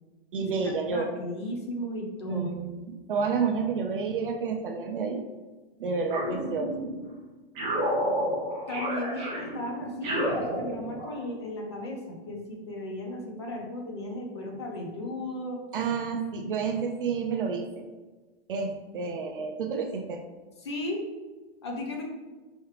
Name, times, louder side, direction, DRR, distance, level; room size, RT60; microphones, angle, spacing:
voice 1, 0.3-1.1 2.3-5.2 5.8-6.9 15.7-17.8 18.5-20.2, right 5 dB, 55° right, 5 dB, 0.5 m, -30 dB
voice 2, 0.9-2.5 8.7-15.6 20.6-21.0 21.6-22.0, left 1 dB, 25° left, 0 dB, 0.4 m, -35 dB
sound 1, 6.1-7.1 7.6-11.2, equal, 15° right, 0.6 m, -30 dB
4.7 x 3.2 x 3.1 m, 1.3 s
hypercardioid pair, 175°, 32 cm